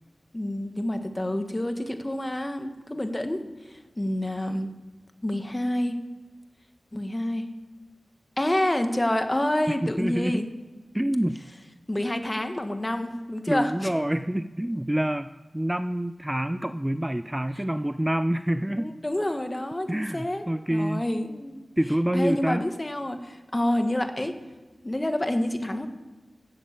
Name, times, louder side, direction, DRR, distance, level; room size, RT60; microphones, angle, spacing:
voice 1, 0.3-4.7 5.2-6.0 6.9-7.4 8.4-10.4 11.9-13.9 18.8-20.4 20.7-21.6 22.1-24.3 24.8-25.9, left 1 dB, 25° left, 7 dB, 1.6 m, -28 dB
voice 2, 9.7-10.4 10.9-11.4 13.5-15.3 15.5-18.9 19.9-21.0 21.8-22.6, right 1 dB, 10° right, 12 dB, 0.4 m, -27 dB
11.5 x 7.3 x 8.5 m, 1.2 s
cardioid pair, 45°, 0 cm